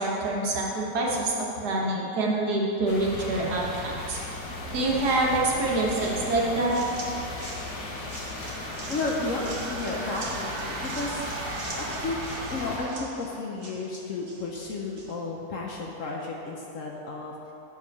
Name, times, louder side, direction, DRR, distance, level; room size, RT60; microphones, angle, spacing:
voice 1, 0.0-4.2 4.7-6.8, right 2 dB, 70° right, -3 dB, 1.7 m, -26 dB
sound 1, 2.9-12.8, left 2 dB, 75° left, 1.6 m, -36 dB
sound 2, 6.0-15.2, right 2 dB, 45° right, 1.4 m, -44 dB
sound 3, 8.3-13.2, right 4 dB, 85° right, 1.4 m, -38 dB
voice 2, 8.9-11.2 11.8-12.2 12.5-17.3, left 3 dB, 60° left, -1 dB, 1.0 m, -33 dB
8.2 x 5.2 x 5.2 m, 2.9 s
omnidirectional pair, 1.8 m